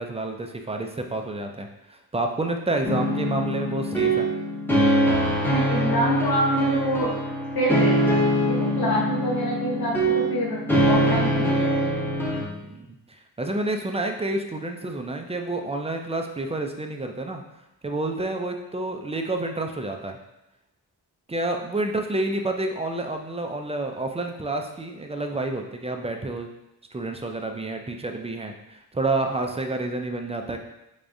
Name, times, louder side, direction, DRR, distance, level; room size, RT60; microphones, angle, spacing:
voice 1, 0.0-4.3 12.3-17.4 17.8-20.2 21.3-26.5 26.9-30.6, right 2 dB, 15° right, 4 dB, 0.3 m, -29 dB
sound 1, 2.8-12.4, equal, 5° left, 0.7 m, -23 dB
voice 2, 5.5-7.2 7.5-8.2 8.5-10.6 10.9-11.8, equal, 70° left, -3 dB, 1.1 m, -26 dB
3.6 x 3.4 x 2.6 m, 0.90 s
cardioid pair, 80°, 38 cm